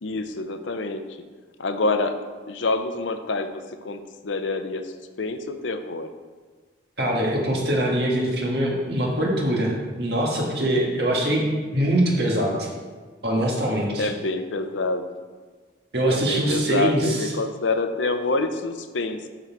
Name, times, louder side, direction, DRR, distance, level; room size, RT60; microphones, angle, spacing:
voice 1, 0.0-1.0 1.6-2.2 2.5-4.9 5.2-6.1 14.0-15.1 16.1-19.3, left 3 dB, 80° left, 8 dB, 0.6 m, -27 dB
voice 2, 7.0-11.4 11.7-12.7 13.2-14.1 15.9-17.3, right 1 dB, 55° right, -2 dB, 1.6 m, -23 dB
11.0 x 4.0 x 4.6 m, 1.4 s
head